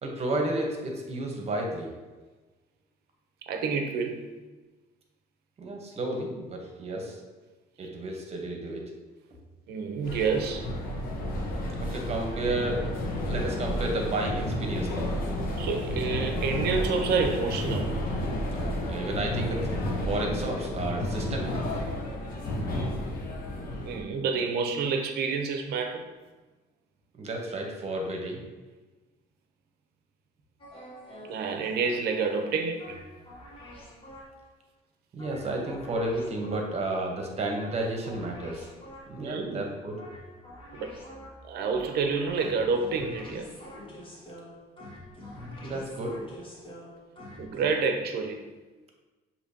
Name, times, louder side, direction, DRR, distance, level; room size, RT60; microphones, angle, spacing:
voice 1, 0.0-1.9 5.6-7.2 7.8-8.8 11.8-12.9 13.3-15.1 18.9-19.8 20.0-21.6 27.2-28.4 35.1-38.7 39.1-40.0 45.6-46.2, right 2 dB, 40° right, 1 dB, 0.9 m, -32 dB
voice 2, 3.4-4.2 9.7-10.7 15.6-17.9 23.8-26.1 31.3-33.0 39.2-39.7 40.7-40.9 41.5-43.5 47.4-48.4, right 5 dB, 70° right, 5 dB, 0.6 m, -28 dB
sound 1, 10.0-24.0, left 1 dB, 60° left, 0.9 m, -31 dB
sound 2, 30.6-34.5 35.2-36.9 37.6-39.3 40.0-47.7, left 1 dB, 30° left, 1.2 m, -46 dB
6.5 x 2.9 x 2.8 m, 1.2 s
cardioid pair, 110°, 17 cm